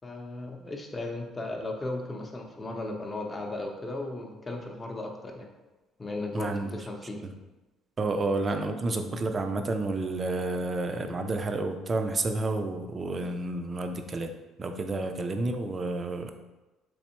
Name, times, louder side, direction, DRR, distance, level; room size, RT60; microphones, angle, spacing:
voice 1, 0.0-5.5 6.0-7.2, left 2 dB, 25° left, 2 dB, 0.6 m, -36 dB
voice 2, 6.3-6.7 7.2-7.3 8.0-14.3 14.6-16.3, right 2 dB, 35° right, 6 dB, 0.4 m, -30 dB
3.5 x 3.2 x 3.0 m, 1.1 s
cardioid pair, 95°, 0 cm